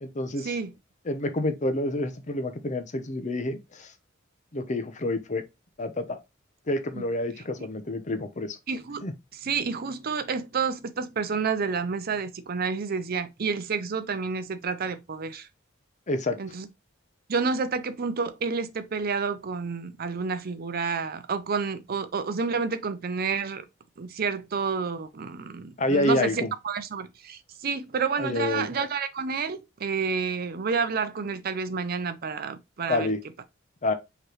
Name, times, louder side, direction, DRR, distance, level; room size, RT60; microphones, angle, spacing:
voice 1, 0.0-0.6 1.1-3.9 4.5-5.4 5.8-6.2 6.7-8.6 9.0-9.1 16.1-16.4 25.8-26.5 28.2-28.7 32.9-33.2 33.8-33.9, left 1 dB, 40° left, 0.7 m, -28 dB
voice 2, 8.7-9.1 9.3-15.5 16.4-16.7 17.3-23.6 24.0-33.1, right 5 dB, 50° right, 0.5 m, -29 dB
4.9 x 3.1 x 3.0 m
head